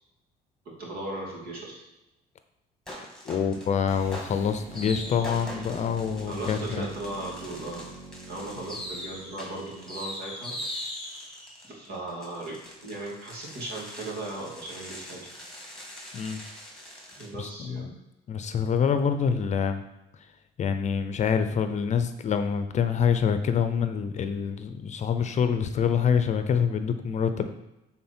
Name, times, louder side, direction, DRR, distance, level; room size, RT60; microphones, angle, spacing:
voice 1, 0.6-1.8 6.3-7.9 8.3-10.5 11.6-15.3 17.2-17.9 27.4-27.5, right 2 dB, 65° right, -3 dB, 2.9 m, -37 dB
sound 1, 2.9-3.7 4.1-17.3, left 1 dB, 5° left, 2.2 m, -41 dB
voice 2, 3.3-6.9 16.1-16.4 17.4-17.9 18.3-19.8 20.6-27.5, left 7 dB, 45° left, 9 dB, 0.6 m, -26 dB
sound 2, 3.8-10.1, right 3 dB, 40° right, 1.6 m, -45 dB
9.3 x 4.1 x 4.4 m, 0.94 s
cardioid pair, 110°, 17 cm